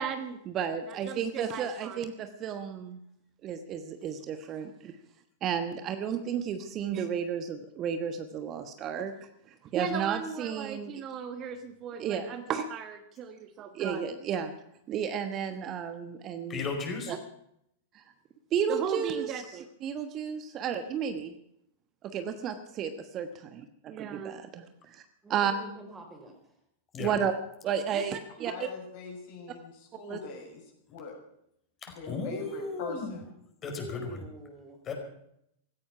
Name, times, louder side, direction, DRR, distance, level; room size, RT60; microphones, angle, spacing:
voice 1, 0.0-3.0 3.4-4.9 5.4-14.5 14.9-16.6 17.1-17.2 17.9-18.0 18.5-21.3 22.0-25.0 25.3-25.5 27.0-27.3 27.6-28.5 30.1-30.2, right 7 dB, 35° right, 9 dB, 1.2 m, -33 dB
voice 2, 16.5-17.1 26.9-27.1 31.8-33.2 33.6-34.2 34.8-34.9, left 4 dB, 30° left, 3 dB, 5.1 m, -35 dB
voice 3, 25.2-26.5 33.6-34.8, right 1 dB, 15° right, 3 dB, 4.7 m, -46 dB
voice 4, 28.4-30.6 30.9-31.1 31.9-33.2, left 4 dB, 50° left, 1 dB, 6.7 m, -42 dB
16.5 x 14.5 x 5.9 m, 0.75 s
figure-of-eight pair, 95°, 0 cm